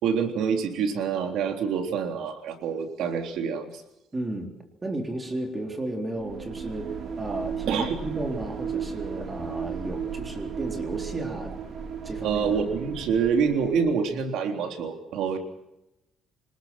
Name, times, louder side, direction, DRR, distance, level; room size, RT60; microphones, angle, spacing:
voice 1, 0.0-3.8 7.7-8.0 12.2-15.4, right 6 dB, 85° right, 5 dB, 3.5 m, -26 dB
voice 2, 4.1-4.5 4.8-11.6 12.0-12.6, right 1 dB, 20° right, 4 dB, 3.9 m, -33 dB
sound 1, 6.2-14.0, right 7 dB, 55° right, 4.1 m, -35 dB
26.0 x 20.5 x 6.1 m, 0.90 s
cardioid pair, 145°, 0 cm